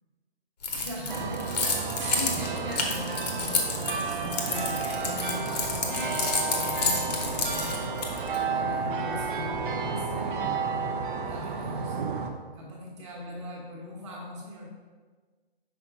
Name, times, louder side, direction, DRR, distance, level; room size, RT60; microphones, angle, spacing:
Keys jangling, 0.6-8.4, left 4 dB, 40° left, 0.9 m, -30 dB
voice 1, 0.7-7.9 8.3-10.6 11.2-12.0 12.5-14.7, left 1 dB, 30° right, -3 dB, 1.2 m, -40 dB
sound 1, 1.1-12.3, right 4 dB, 55° right, 0.7 m, -31 dB
5.7 x 4.3 x 3.8 m, 1.4 s
hypercardioid pair, 165°, 31 cm